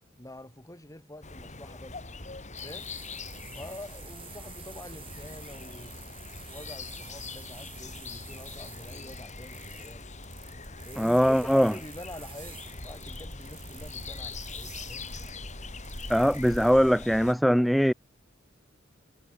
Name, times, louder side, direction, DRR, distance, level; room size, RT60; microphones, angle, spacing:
voice 1, 0.2-2.0 2.6-2.9 3.5-6.2 6.5-10.1 10.8-15.1, left 1 dB, 15° left, 4.7 m, -46 dB
sound 1, 1.2-17.3, left 3 dB, 35° left, 4.8 m, -42 dB
sound 2, 2.6-16.7, right 8 dB, 25° right, 6.7 m, -50 dB
voice 2, 11.0-11.7 16.1-17.9, equal, ahead, 0.7 m, -21 dB
head